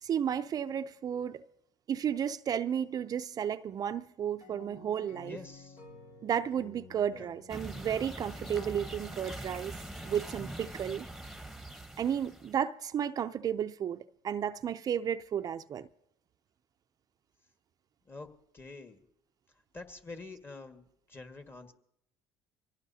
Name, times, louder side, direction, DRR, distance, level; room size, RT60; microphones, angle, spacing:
voice 1, 0.0-1.5 1.9-5.4 6.2-9.8 10.0-11.1 12.0-15.9, right 9 dB, 45° right, 0.5 m, -33 dB
sound 1, 4.4-9.0, left 2 dB, 80° left, 3.8 m, -54 dB
voice 2, 5.3-5.8 7.1-7.3 18.1-18.3 18.5-19.0 19.7-20.8 21.1-21.7, left 3 dB, 25° left, 1.6 m, -46 dB
sound 2, 7.5-12.6, right 1 dB, ahead, 1.1 m, -43 dB
Bowed string instrument, 8.5-11.9, left 5 dB, 45° left, 1.0 m, -56 dB
24.5 x 17.5 x 2.8 m
supercardioid pair, 85°, 9 cm